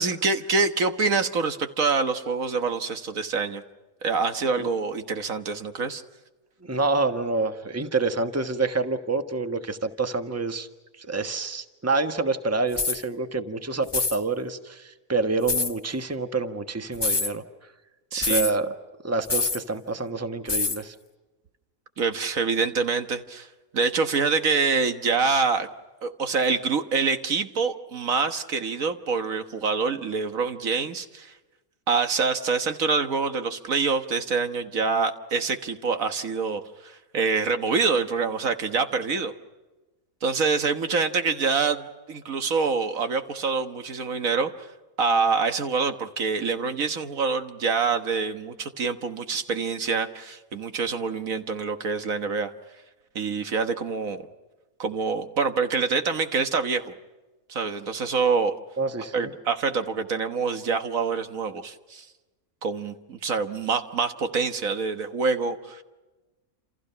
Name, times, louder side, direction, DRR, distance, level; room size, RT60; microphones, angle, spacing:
voice 1, 0.0-3.6 4.0-6.0 18.1-18.5 22.0-23.5 23.7-25.7 26.0-31.3 31.9-39.3 40.2-44.5 45.0-52.5 53.2-54.2 54.8-56.9 57.5-58.6 59.1-62.1 62.6-65.8, right 4 dB, 75° right, 8 dB, 1.8 m, -26 dB
voice 2, 6.6-10.7 11.0-17.4 18.2-18.7 19.0-20.9 58.8-59.3, right 3 dB, 10° right, 8 dB, 1.3 m, -27 dB
sound 1, 12.7-13.0 13.9-14.2 15.5-15.7 16.9-17.3 18.2-18.5 19.3-19.6 20.5-20.8, left 3 dB, 25° left, 0.7 m, -25 dB
29.0 x 28.0 x 5.8 m, 1.2 s
omnidirectional pair, 1.5 m